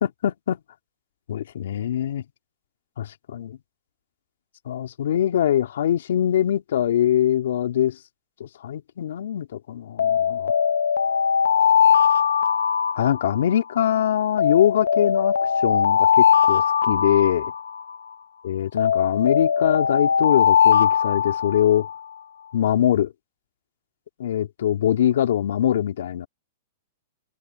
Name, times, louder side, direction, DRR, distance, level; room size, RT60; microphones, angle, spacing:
voice 1, 0.0-0.6 1.3-2.2 3.0-3.6 4.7-8.0 8.4-10.5 12.9-15.3 15.6-17.5 18.4-21.9 22.5-23.1 24.2-26.3, left 10 dB, 75° left, 2.4 m, -23 dB
Alarm, 10.0-13.7 14.4-18.1 18.8-22.0, left 7 dB, 90° left, 1.0 m, -20 dB
hypercardioid pair, 130°, 0 cm